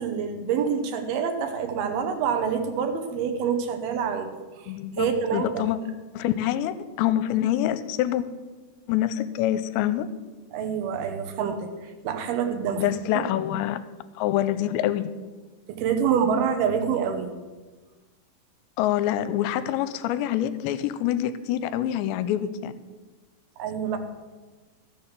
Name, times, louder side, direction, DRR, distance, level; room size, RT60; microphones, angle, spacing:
voice 1, 0.0-5.5 10.5-11.7 12.0-12.9 13.1-13.2 15.7-17.3 23.6-24.0, right 7 dB, 70° right, 6 dB, 2.7 m, -26 dB
voice 2, 4.7-5.8 6.1-8.3 8.9-10.1 12.8-13.8 14.2-15.1 18.8-22.7, left 12 dB, 85° left, 13 dB, 2.8 m, -26 dB
13.5 x 7.2 x 6.6 m, 1.3 s
omnidirectional pair, 5.1 m